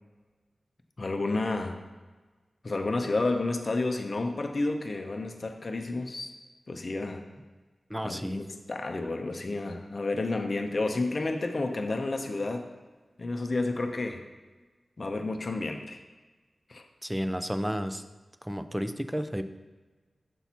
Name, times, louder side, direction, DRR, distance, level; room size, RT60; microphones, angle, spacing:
voice 1, 1.0-1.8 2.6-6.3 6.7-7.3 8.0-12.7 13.2-14.2 15.0-16.0 16.7-16.8, left 2 dB, 50° left, 5 dB, 0.5 m, -30 dB
voice 2, 7.9-8.4 17.0-18.0 18.4-19.4, equal, 5° right, 10 dB, 0.3 m, -32 dB
6.9 x 5.8 x 2.8 m, 1.3 s
wide cardioid pair, 85°, 0 cm